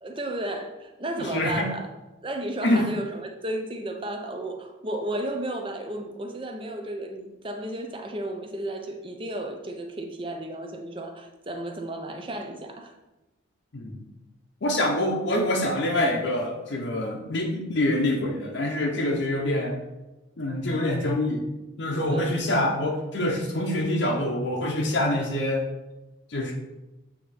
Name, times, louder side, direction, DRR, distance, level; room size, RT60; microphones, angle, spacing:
voice 1, 0.0-1.9 2.2-12.9 22.1-22.3, right 1 dB, 25° right, 4 dB, 0.6 m, -33 dB
voice 2, 1.2-1.7 2.6-2.9 13.7-14.1 14.6-19.8 20.4-21.5 21.8-25.7 26.3-26.5, left 1 dB, 60° left, 0 dB, 0.7 m, -25 dB
8.1 x 2.8 x 4.1 m, 1.0 s
head